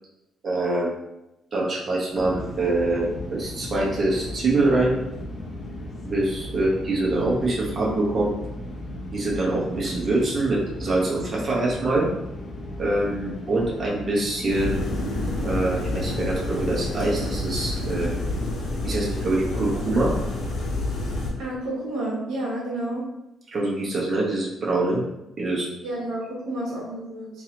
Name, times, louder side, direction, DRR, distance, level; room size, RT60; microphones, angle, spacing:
voice 1, 0.4-0.9 1.5-5.0 6.0-8.3 9.1-12.1 12.8-14.9 15.4-18.1 18.8-20.2 23.5-25.0 25.4-25.7, right 2 dB, 40° right, -5 dB, 1.2 m, -24 dB
sound 1, 2.1-18.6, left 1 dB, 35° left, 0.8 m, -36 dB
sound 2, 14.5-21.3, left 2 dB, 70° left, 1.0 m, -28 dB
voice 2, 21.4-23.0 25.8-27.4, right 1 dB, 90° right, -4 dB, 1.0 m, -30 dB
3.7 x 2.9 x 2.9 m, 0.91 s
cardioid pair, 90°, 0 cm